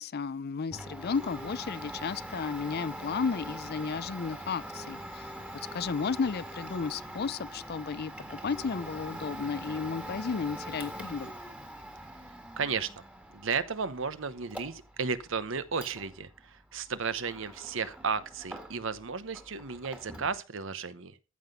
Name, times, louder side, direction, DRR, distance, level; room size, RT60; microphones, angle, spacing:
voice 1, 0.0-5.3 5.7-11.3, left 5 dB, 50° left, 0.5 m, -33 dB
Domestic sounds home sounds, 0.7-19.0 19.3-20.4, right 1 dB, 5° right, 1.7 m, -43 dB
voice 2, 12.6-13.0 13.3-21.2, right 5 dB, 65° right, 0.9 m, -34 dB
14.5 x 5.9 x 5.4 m
head